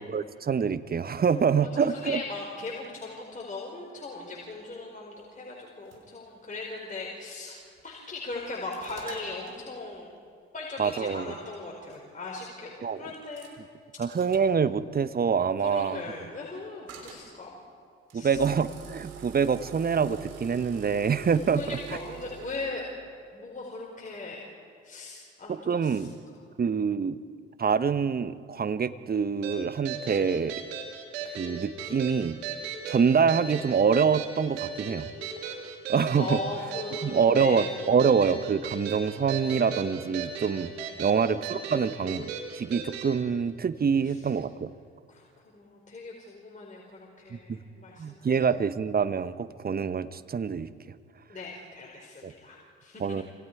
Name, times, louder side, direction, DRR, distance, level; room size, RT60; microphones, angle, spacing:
voice 1, 0.0-2.2 10.8-11.3 12.8-13.0 14.0-16.0 18.1-21.6 25.5-26.1 26.6-27.2 27.6-30.6 31.4-32.4 32.9-35.1 35.9-36.4 37.0-40.7 41.0-44.7 47.3-47.6 48.0-50.7 52.2-52.3 53.0-53.2, right 6 dB, 30° right, 13 dB, 1.1 m, -26 dB
voice 2, 1.6-10.1 10.5-13.6 15.6-17.6 18.1-18.4 21.5-22.9 23.3-24.5 24.8-26.4 36.2-38.1 41.0-41.2 41.8-41.9 44.0-44.2 45.1-48.3 51.3-53.2, left 3 dB, 25° left, -3 dB, 4.7 m, -39 dB
sound 1, 5.6-6.0 6.6-6.7 7.6-7.9 8.3-9.6 11.2-11.3 11.8-12.0 13.1-13.5 14.1-14.6 16.9-17.3 18.1-22.7, right 6 dB, 55° right, 3.8 m, -45 dB
sound 2, 29.4-43.1, right 6 dB, 75° right, 2.4 m, -37 dB
27.5 x 26.5 x 4.8 m, 2.2 s
figure-of-eight pair, 45°, 31 cm